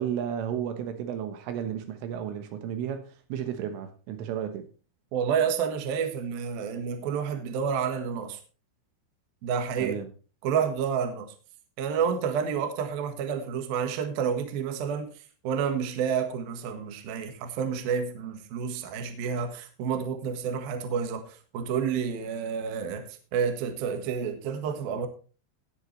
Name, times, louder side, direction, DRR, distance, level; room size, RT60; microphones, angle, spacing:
voice 1, 0.0-4.7 9.8-10.1, right 9 dB, 75° right, 3.6 m, -33 dB
voice 2, 5.1-8.4 9.4-10.0 10.4-11.3 11.8-15.1 15.4-23.1 23.3-25.1, right 7 dB, 60° right, 2.8 m, -29 dB
19.0 x 8.1 x 3.3 m
omnidirectional pair, 5.9 m